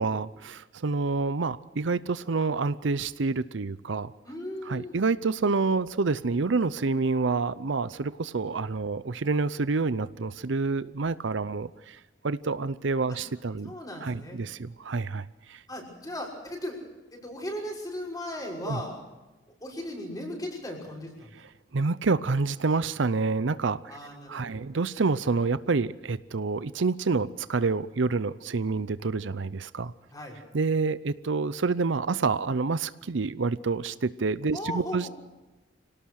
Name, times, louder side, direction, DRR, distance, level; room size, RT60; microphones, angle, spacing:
voice 1, 0.0-4.1 4.6-13.7 14.0-15.6 18.7-18.8 21.4-21.5 21.7-23.9 24.3-29.9 30.5-35.1, right 4 dB, 65° right, 16 dB, 0.6 m, -28 dB
voice 2, 4.2-4.9 13.1-13.2 13.6-14.4 15.7-16.8 17.1-19.0 19.6-21.3 23.9-24.7 30.1-30.4 34.5-35.1, left 1 dB, 20° left, -1 dB, 6.0 m, -37 dB
26.0 x 18.0 x 6.4 m, 1.1 s
head